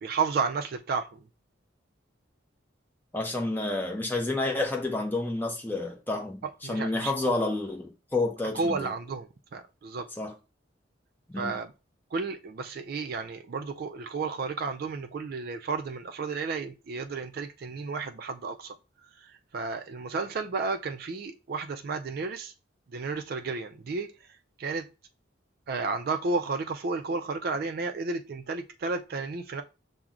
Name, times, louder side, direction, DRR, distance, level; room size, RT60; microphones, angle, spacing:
voice 1, 0.0-1.3 6.6-7.1 8.5-10.1 11.4-11.7 12.1-18.8 19.2-22.5 22.9-24.9 25.7-29.6, right 4 dB, 50° right, 0.4 m, -32 dB
voice 2, 3.1-6.4 6.7-8.9 10.2-10.3 11.3-11.6, left 2 dB, 10° left, 0.7 m, -29 dB
5.8 x 2.1 x 3.7 m
head